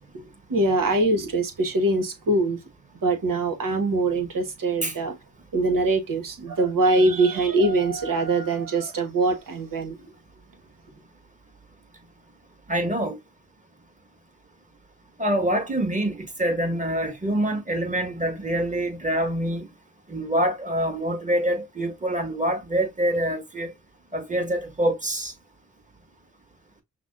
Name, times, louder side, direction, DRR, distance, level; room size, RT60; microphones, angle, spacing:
voice 1, 0.5-2.6 3.0-5.1 5.5-10.0, right 2 dB, 75° right, 1.2 m, -23 dB
voice 2, 12.7-13.2 15.2-19.7 20.1-23.7 24.1-25.3, right 1 dB, 20° right, 1.6 m, -25 dB
5.9 x 2.2 x 2.4 m
supercardioid pair, 40°, 33 cm